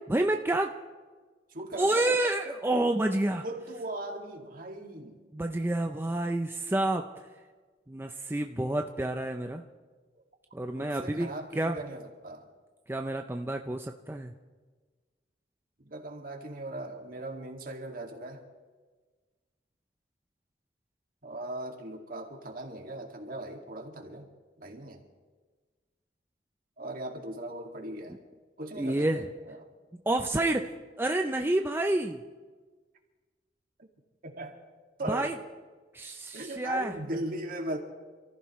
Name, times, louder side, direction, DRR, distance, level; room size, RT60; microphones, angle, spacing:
voice 1, 0.1-0.7 1.8-3.4 5.3-7.0 7.9-9.6 10.5-11.3 11.6-11.8 12.9-14.3 28.8-29.3 30.1-30.7 31.0-32.2 35.1-35.3 35.9-36.9, right 1 dB, 15° right, 4 dB, 0.5 m, -28 dB
voice 2, 1.5-2.2 3.4-5.2 10.7-12.5 15.9-18.4 21.2-24.3 24.6-25.0 26.8-28.2 28.6-29.7 34.2-34.6 35.0-35.3 36.3-37.8, right 1 dB, 55° right, 2 dB, 2.2 m, -39 dB
27.5 x 15.0 x 3.2 m, 1.4 s
head